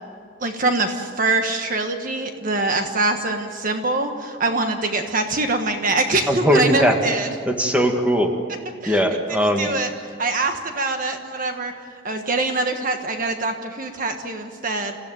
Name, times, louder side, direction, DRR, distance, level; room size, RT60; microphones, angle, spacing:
voice 1, 0.4-7.3 8.8-9.0 9.6-11.7 12.0-15.0, right 3 dB, 45° right, 5 dB, 1.5 m, -24 dB
voice 2, 6.3-7.0 7.5-8.3 8.9-9.7, equal, 5° right, 3 dB, 2.0 m, -19 dB
28.0 x 15.5 x 9.2 m, 2.1 s
head